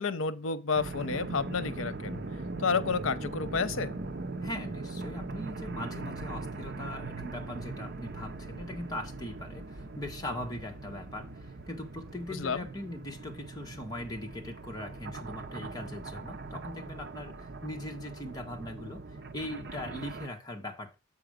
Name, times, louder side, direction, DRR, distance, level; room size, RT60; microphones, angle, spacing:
voice 1, 0.0-2.2 2.6-3.9 12.3-12.7, left 5 dB, 85° left, 0.7 m, -30 dB
sound 1, 0.7-20.3, right 3 dB, 50° right, 0.8 m, -40 dB
voice 2, 4.4-20.9, left 1 dB, 20° left, 1.5 m, -40 dB
7.6 x 4.9 x 5.0 m
head